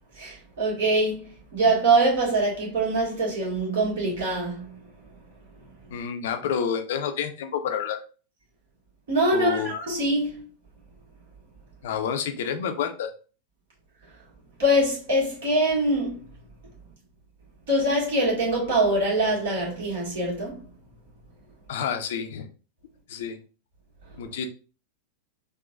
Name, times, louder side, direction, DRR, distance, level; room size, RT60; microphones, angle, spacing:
voice 1, 0.2-1.2 1.5-4.7 9.1-10.4 14.6-16.2 17.7-20.5, right 1 dB, 55° right, 1.7 m, -23 dB
voice 2, 5.9-8.0 9.3-9.7 11.8-13.1 21.7-22.5 23.1-23.4 24.2-24.5, left 7 dB, 55° left, 0.5 m, -29 dB
3.8 x 2.4 x 2.4 m
figure-of-eight pair, 90°, 0 cm